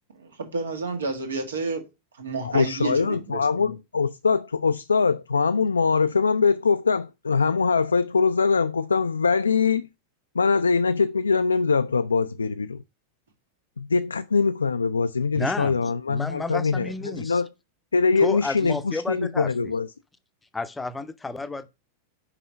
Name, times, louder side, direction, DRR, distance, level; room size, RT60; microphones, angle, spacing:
voice 1, 0.1-1.8 2.1-3.8, right 3 dB, 70° right, 1.7 m, -30 dB
voice 2, 2.4-9.9 10.3-12.8 13.8-17.5 17.9-19.9, left 5 dB, 75° left, 0.3 m, -23 dB
voice 3, 15.3-15.8 16.1-17.4 18.2-19.7 20.5-21.7, left 3 dB, 10° left, 0.7 m, -31 dB
5.7 x 5.0 x 5.5 m
figure-of-eight pair, 90°, 0 cm